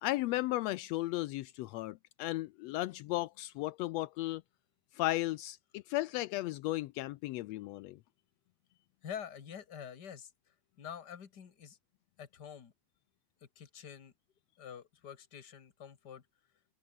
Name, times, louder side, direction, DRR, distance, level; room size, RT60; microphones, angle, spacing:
voice 1, 0.0-4.4 5.0-8.0, left 17 dB, 85° left, 1.5 m, -35 dB
voice 2, 9.0-11.8 12.2-12.7 13.4-14.1 14.6-16.2, left 8 dB, 40° left, 2.0 m, -47 dB
omnidirectional pair, 3.5 m